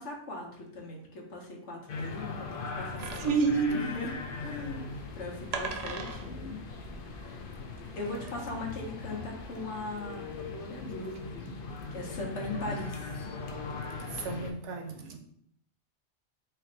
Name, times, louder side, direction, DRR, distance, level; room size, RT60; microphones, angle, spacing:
voice 1, 0.0-6.6 8.0-11.6 11.9-13.1, left 2 dB, 85° left, -1 dB, 1.2 m, -39 dB
sound 1, 1.9-14.5, left 4 dB, 60° left, 0.7 m, -40 dB
sound 2, 3.0-7.9, right 4 dB, 60° right, 0.4 m, -41 dB
voice 2, 3.2-3.7 14.2-15.2, right 5 dB, 80° right, 4 dB, 1.0 m, -28 dB
4.4 x 2.2 x 3.8 m, 0.66 s
omnidirectional pair, 1.2 m